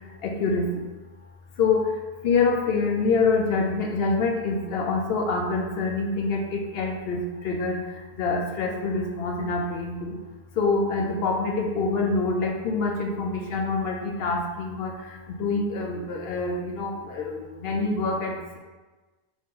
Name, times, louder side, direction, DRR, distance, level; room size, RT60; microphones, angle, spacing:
voice 1, 2.2-7.2 7.4-7.8 8.2-10.1 10.6-14.9 15.4-17.3 17.6-18.3, left 4 dB, 70° left, 1 dB, 0.9 m, -25 dB
4.2 x 3.0 x 3.7 m, 1.2 s
omnidirectional pair, 1.0 m